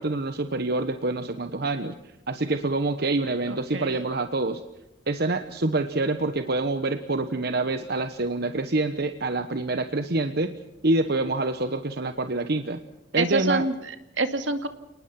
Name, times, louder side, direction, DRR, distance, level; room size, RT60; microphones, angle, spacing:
voice 1, 0.0-1.9 2.3-4.6 5.1-10.5 10.8-12.8 13.1-13.6, right 2 dB, 55° right, 9 dB, 1.1 m, -26 dB
voice 2, 3.5-3.9 13.2-14.7, right 3 dB, 75° right, 8 dB, 2.3 m, -27 dB
30.0 x 19.5 x 5.9 m, 0.92 s
head